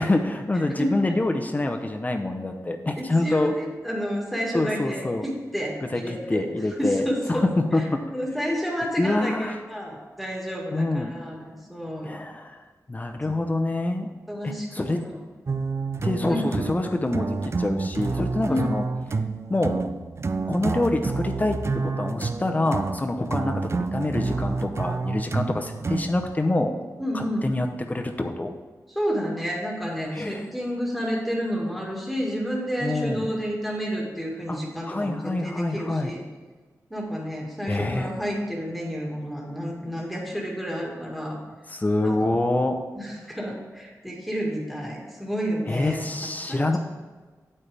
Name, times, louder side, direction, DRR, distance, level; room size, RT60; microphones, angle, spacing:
voice 1, 0.0-3.5 4.5-5.2 5.9-6.0 6.3-8.0 9.0-9.6 10.7-11.1 12.1-12.6 12.9-14.1 14.4-15.0 16.0-18.8 19.5-19.8 20.5-26.7 27.1-28.5 30.1-30.5 32.8-33.3 34.5-34.6 34.8-36.1 37.7-38.1 41.7-42.8 45.7-46.8, left 2 dB, 25° left, 4 dB, 0.8 m, -26 dB
voice 2, 3.0-7.4 7.8-7.9 8.1-12.1 13.3-13.4 14.3-14.7 14.9-15.2 16.3-16.5 18.5-18.8 27.0-27.5 28.9-36.2 36.9-41.4 42.0-42.3 43.0-46.0 46.5-46.8, equal, ahead, -2 dB, 1.9 m, -30 dB
sound 1, 15.5-26.3, right 4 dB, 45° right, 0.5 m, -29 dB
8.8 x 8.6 x 3.4 m, 1.4 s
wide cardioid pair, 85°, 6 cm